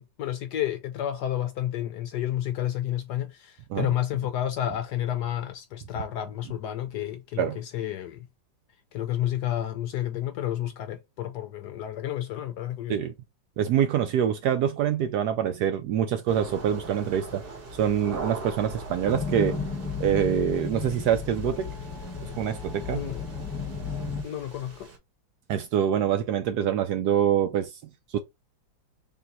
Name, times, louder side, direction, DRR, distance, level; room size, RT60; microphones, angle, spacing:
voice 1, 0.0-8.3 8.9-13.0 22.9-23.2 24.2-24.9, left 11 dB, 75° left, 0.9 m, -30 dB
voice 2, 13.6-17.4 17.8-19.6 20.0-21.7 22.3-23.1 25.5-27.8 28.1-28.2, right 9 dB, 75° right, 1.0 m, -25 dB
sound 1, 16.3-25.0, right 2 dB, 35° right, 1.0 m, -41 dB
sound 2, 19.0-24.2, left 4 dB, 15° left, 1.2 m, -33 dB
3.7 x 2.7 x 3.9 m
omnidirectional pair, 2.1 m